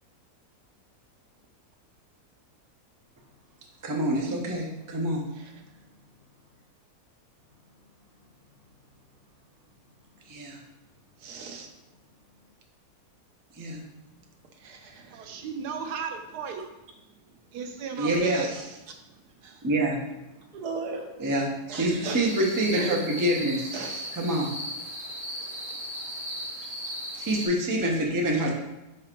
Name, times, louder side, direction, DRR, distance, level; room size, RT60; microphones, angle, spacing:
voice 1, 3.8-5.2 10.3-10.6 13.5-13.8 18.0-18.5 19.6-20.0 21.2-23.7 24.1-24.5 27.1-28.5, right 1 dB, 20° right, -1 dB, 0.5 m, -26 dB
voice 2, 11.2-11.7 14.6-15.3 18.3-18.7 19.4-19.6 20.5-21.1 21.7-22.3 22.7-23.0 23.7-24.2 25.4-25.5, right 4 dB, 75° right, 4 dB, 1.3 m, -38 dB
voice 3, 15.0-16.7 17.5-18.5, right 6 dB, 90° right, 5 dB, 1.3 m, -34 dB
sound 1, 22.2-27.5, equal, 55° right, 1.9 m, -36 dB
5.0 x 4.7 x 4.5 m, 1.0 s
omnidirectional pair, 1.7 m